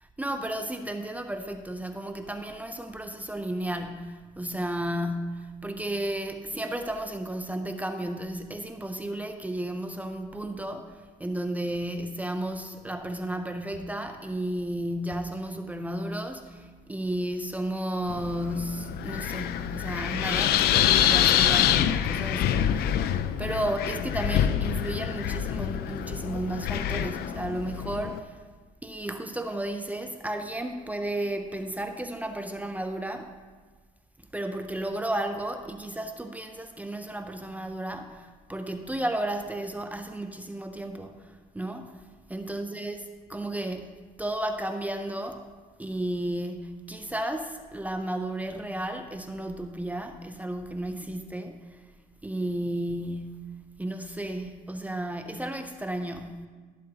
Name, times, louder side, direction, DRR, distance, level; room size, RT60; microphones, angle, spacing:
voice 1, 0.0-23.1 23.4-28.4 28.8-33.4 34.2-43.0 43.3-45.5 45.8-51.9 52.2-53.5 53.8-56.5, right 1 dB, 10° right, 6 dB, 0.6 m, -33 dB
Wind, 18.1-28.2, left 10 dB, 70° left, 0.5 m, -26 dB
15.0 x 7.5 x 2.9 m, 1.4 s
cardioid pair, 110°, 17 cm